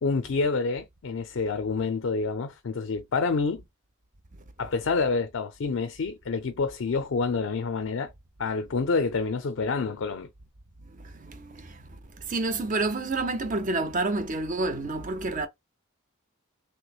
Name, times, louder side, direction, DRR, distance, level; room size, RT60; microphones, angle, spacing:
voice 1, 0.0-3.6 4.6-8.1 8.4-10.3, left 4 dB, 65° left, 0.4 m, -28 dB
voice 2, 10.9-15.5, right 2 dB, 35° right, 0.5 m, -29 dB
3.4 x 3.0 x 2.3 m
head